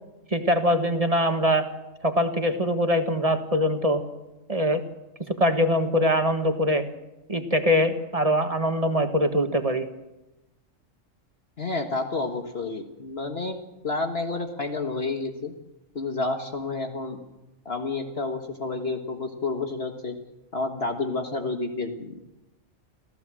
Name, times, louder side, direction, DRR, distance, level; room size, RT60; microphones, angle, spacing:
voice 1, 0.3-1.7 2.0-4.0 4.5-4.8 5.4-6.8 7.3-9.9, equal, 25° right, 6 dB, 1.6 m, -23 dB
voice 2, 11.6-13.6 13.8-15.5 15.9-17.2 17.6-20.2 20.5-22.2, left 3 dB, 50° left, 3 dB, 1.7 m, -30 dB
26.0 x 15.0 x 7.6 m, 0.99 s
omnidirectional pair, 1.4 m